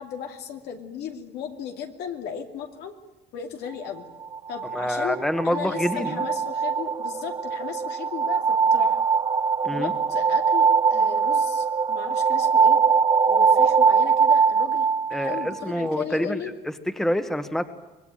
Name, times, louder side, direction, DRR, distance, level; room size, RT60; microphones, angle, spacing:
voice 1, 0.0-2.9 3.3-4.1 4.5-9.0 9.7-12.8 13.3-14.9 15.2-16.5, left 8 dB, 80° left, 4 dB, 2.6 m, -36 dB
sound 1, 4.2-15.9, right 5 dB, 25° right, 1.0 m, -22 dB
voice 2, 4.7-6.2 9.6-9.9 15.1-16.4 17.0-17.7, equal, ahead, 9 dB, 1.7 m, -26 dB
25.0 x 19.5 x 9.1 m, 1.1 s
cardioid pair, 110°, 17 cm